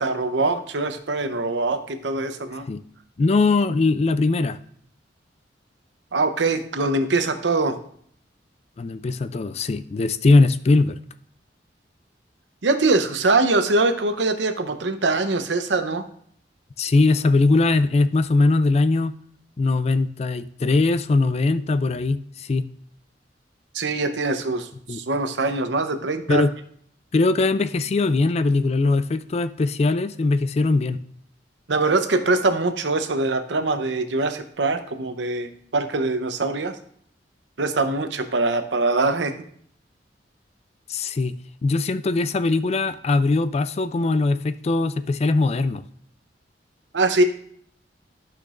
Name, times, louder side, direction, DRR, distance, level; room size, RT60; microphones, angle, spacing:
voice 1, 0.0-2.7 6.1-7.8 12.6-16.0 23.7-26.4 31.7-36.8 37.6-39.3 46.9-47.2, right 3 dB, 80° right, 8 dB, 0.8 m, -23 dB
voice 2, 3.2-4.6 8.8-11.0 16.8-19.1 19.6-22.6 24.9-25.0 26.3-26.5 27.1-31.0 40.9-41.3 41.6-45.8, left 3 dB, 35° left, 13 dB, 0.4 m, -20 dB
13.0 x 5.9 x 2.5 m, 0.62 s
head